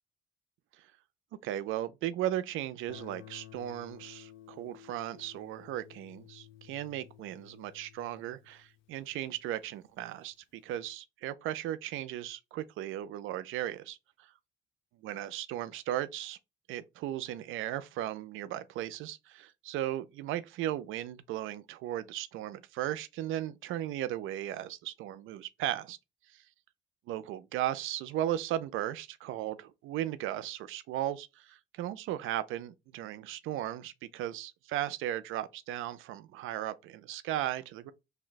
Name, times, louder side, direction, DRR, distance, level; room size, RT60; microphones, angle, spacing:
voice 1, 1.4-14.3 15.0-16.4 16.7-26.0 26.3-26.4 27.1-37.9, right 12 dB, 85° right, 0.4 m, -36 dB
Guitar, 2.9-9.6, left 12 dB, 80° left, 0.6 m, -54 dB
2.7 x 2.2 x 3.9 m
cardioid pair, 90°, 20 cm